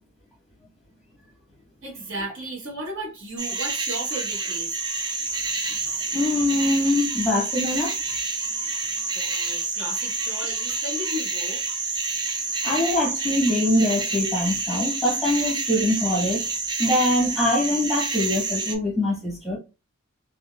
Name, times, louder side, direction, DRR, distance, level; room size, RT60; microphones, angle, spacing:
voice 1, 1.8-4.8 9.1-11.6, right 1 dB, 60° right, 1.2 m, -35 dB
sound 1, 3.4-18.8, right 3 dB, 20° right, 0.4 m, -28 dB
voice 2, 6.1-7.9 12.6-16.5 16.8-19.6, left 1 dB, ahead, 0.9 m, -23 dB
3.7 x 2.2 x 2.3 m
head